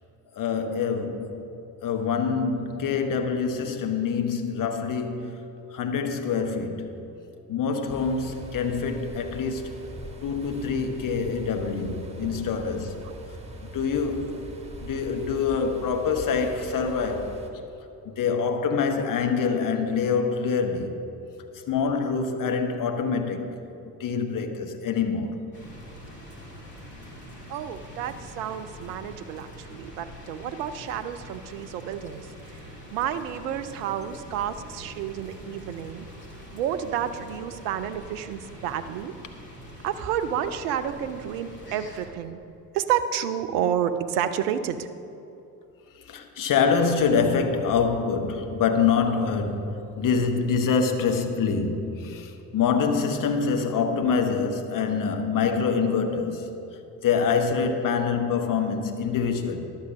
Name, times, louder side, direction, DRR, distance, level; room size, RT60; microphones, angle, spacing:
voice 1, 0.3-1.5 1.8-6.9 7.5-9.7 10.2-13.0 13.7-14.4 14.8-17.4 18.0-21.0 21.5-25.5 34.0-34.1 45.9-56.5 57.0-59.6, left 5 dB, 40° left, 1.2 m, -25 dB
sound 1, 7.9-17.5, right 1 dB, 15° right, 1.4 m, -42 dB
sound 2, 25.5-42.1, equal, 80° left, 1.8 m, -44 dB
voice 2, 27.5-32.3 32.9-36.1 36.5-39.1 39.8-42.4 42.7-44.9, right 9 dB, 65° right, 0.8 m, -30 dB
11.5 x 7.3 x 6.0 m
figure-of-eight pair, 50°, 47 cm